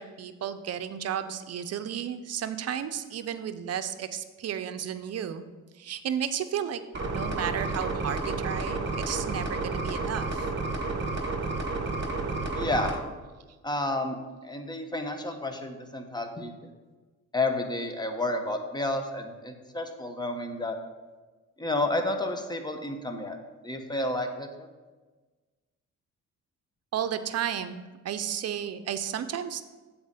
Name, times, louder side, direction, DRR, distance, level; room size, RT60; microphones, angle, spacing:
voice 1, 0.0-5.4 5.8-6.8 7.1-10.5 26.9-29.6, right 9 dB, 55° right, 10 dB, 0.7 m, -33 dB
sound 1, 6.9-12.9, right 3 dB, 35° right, 1.4 m, -31 dB
voice 2, 12.5-13.0 13.6-14.2 14.4-16.5 17.3-20.8 21.6-23.4 23.6-24.7, left 2 dB, 15° left, 5 dB, 1.0 m, -31 dB
7.9 x 4.3 x 6.7 m, 1.3 s
cardioid pair, 90°, 30 cm